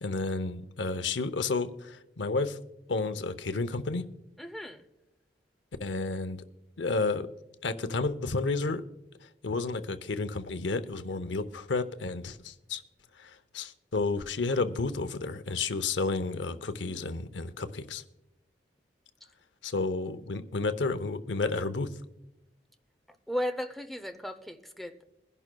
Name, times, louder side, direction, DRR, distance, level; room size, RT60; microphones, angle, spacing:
voice 1, 0.0-2.6 2.9-4.0 5.8-6.4 6.8-7.3 7.6-8.8 9.4-12.8 13.2-18.0 19.6-21.9, left 3 dB, 90° left, 11 dB, 0.7 m, -31 dB
voice 2, 4.4-4.8 23.3-25.0, equal, ahead, 6 dB, 0.6 m, -35 dB
22.0 x 11.0 x 2.3 m, 0.96 s
head